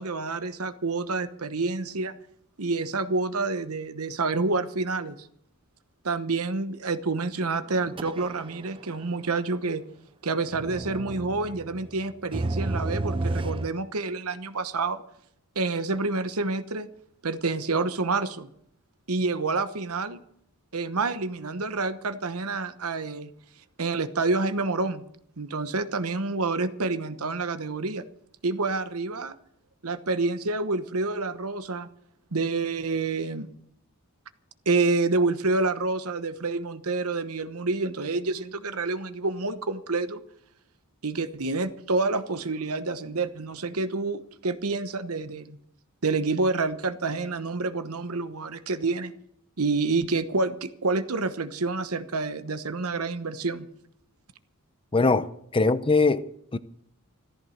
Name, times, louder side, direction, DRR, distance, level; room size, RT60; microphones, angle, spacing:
voice 1, 0.0-2.1 2.6-5.3 6.0-9.8 10.2-15.0 15.5-16.9 17.2-18.5 19.1-20.2 20.7-23.3 23.8-25.0 25.4-28.0 28.4-29.3 29.8-31.9 32.3-33.5 34.7-40.2 41.0-45.6 46.0-49.1 49.6-53.7, right 3 dB, 75° right, 1.1 m, -28 dB
sound 1, 7.7-8.7 8.9-9.0 10.5-13.7, right 2 dB, 25° right, 0.5 m, -31 dB
voice 2, 54.9-56.6, left 3 dB, 25° left, 0.6 m, -22 dB
14.0 x 14.0 x 6.6 m
head